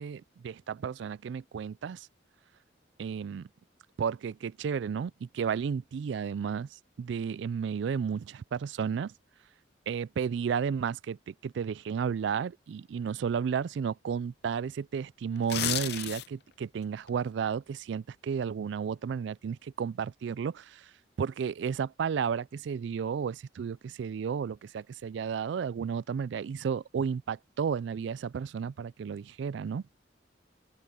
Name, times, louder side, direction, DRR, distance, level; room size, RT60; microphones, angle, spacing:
voice 1, 0.0-2.1 3.0-3.5 4.0-9.1 9.9-20.9 21.2-29.8, right 7 dB, 75° right, 0.3 m, -33 dB
sound 1, 15.4-16.5 16.9-17.1, left 11 dB, 60° left, 0.7 m, -32 dB
open air
head